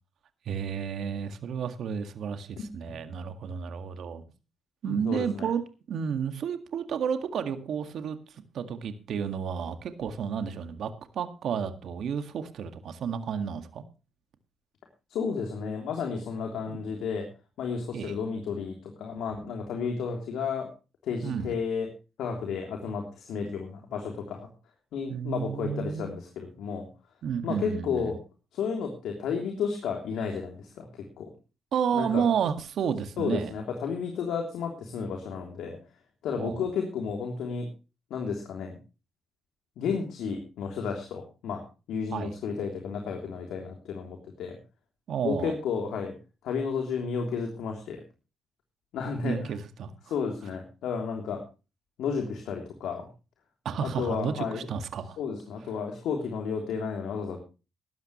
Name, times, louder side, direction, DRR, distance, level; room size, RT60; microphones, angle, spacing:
voice 1, 0.5-4.2 4.8-5.6 5.9-8.2 8.5-13.8 16.7-16.8 17.9-18.1 21.2-21.6 25.1-26.1 27.2-28.1 31.7-33.5 36.4-36.6 42.1-42.3 45.1-45.6 49.2-49.9 53.7-55.2, right 7 dB, 65° right, 8 dB, 1.9 m, -31 dB
voice 2, 4.9-5.5 15.1-17.3 17.6-20.7 21.0-21.9 22.2-24.5 24.9-26.9 27.4-28.2 28.5-30.9 31.2-31.3 31.9-32.2 33.2-35.8 36.2-37.7 38.1-38.7 39.8-41.6 41.9-44.6 45.2-46.1 46.4-48.0 48.9-49.5 50.0-51.4 52.0-53.0 53.8-54.7 55.2-57.4, left 6 dB, 80° left, 3 dB, 3.2 m, -32 dB
17.0 x 12.0 x 3.1 m, 0.32 s
cardioid pair, 90°, 0 cm